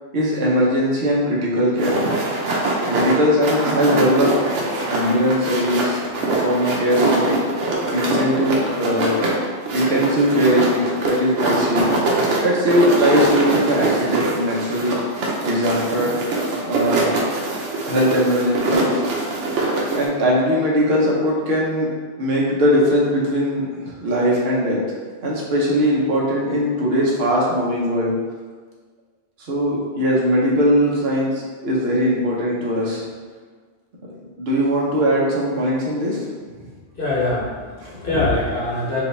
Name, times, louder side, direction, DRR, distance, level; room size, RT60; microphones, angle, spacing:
voice 1, 0.1-2.0 2.9-4.3 4.9-6.0 6.4-7.4 7.9-9.2 9.7-11.9 12.4-15.0 15.4-16.2 16.7-17.2 17.9-19.0 19.9-21.9 22.2-24.8 25.2-28.1 29.4-33.0 34.4-36.2 37.8-37.9, equal, 65° right, -4 dB, 1.1 m, -20 dB
sound 1, 1.8-20.1, right 2 dB, 85° right, 1.0 m, -23 dB
voice 2, 36.9-39.0, left 2 dB, 55° left, -7 dB, 1.0 m, -23 dB
4.8 x 2.4 x 3.3 m, 1.5 s
omnidirectional pair, 1.2 m